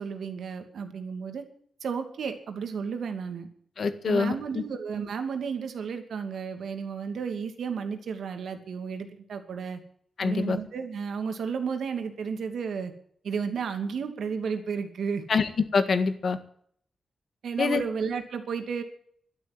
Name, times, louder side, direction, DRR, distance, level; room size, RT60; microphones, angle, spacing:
voice 1, 0.0-1.4 1.8-3.5 4.0-9.8 10.2-12.9 13.2-15.2 17.4-18.8, right 6 dB, 80° right, 7 dB, 2.6 m, -32 dB
voice 2, 3.8-4.3 10.2-10.6 15.3-16.4 17.6-17.8, left 5 dB, 50° left, 10 dB, 1.8 m, -25 dB
12.5 x 12.0 x 9.2 m, 0.62 s
wide cardioid pair, 175°, 0 cm